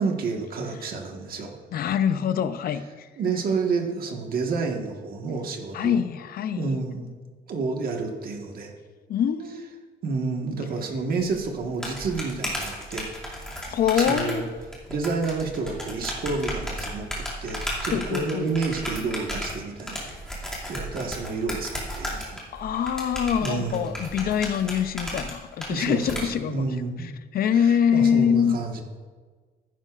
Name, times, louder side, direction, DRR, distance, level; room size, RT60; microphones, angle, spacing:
voice 1, 0.0-1.5 3.2-6.0 6.6-7.1 7.5-8.7 10.0-13.1 14.0-14.4 14.9-22.4 23.4-23.9 25.7-27.1 27.5-28.8, right 4 dB, 55° right, 2 dB, 1.5 m, -30 dB
voice 2, 1.7-3.1 5.7-6.8 9.1-9.9 13.7-14.4 17.9-18.5 22.5-26.7 27.0-28.6, left 8 dB, 55° left, 11 dB, 0.6 m, -24 dB
sound 1, 11.2-26.2, equal, 5° left, 2.4 m, -34 dB
14.5 x 11.0 x 2.5 m, 1.4 s
cardioid pair, 165°, 18 cm